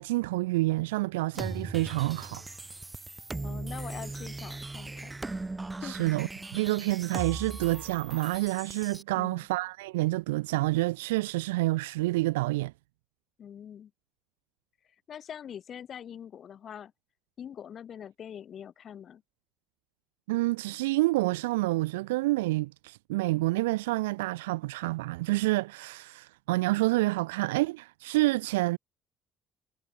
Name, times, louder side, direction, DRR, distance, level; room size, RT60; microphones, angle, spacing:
voice 1, 0.0-2.4 5.8-12.7 20.3-28.8, right 20 dB, 75° right, 1.0 m, -28 dB
sound 1, 1.3-9.0, right 2 dB, 20° right, 4.6 m, -39 dB
voice 2, 3.4-5.2 5.8-6.0 9.1-9.4 13.4-13.9 15.1-16.9 17.4-19.2, left 9 dB, 50° left, 7.8 m, -43 dB
hypercardioid pair, 55°, 0 cm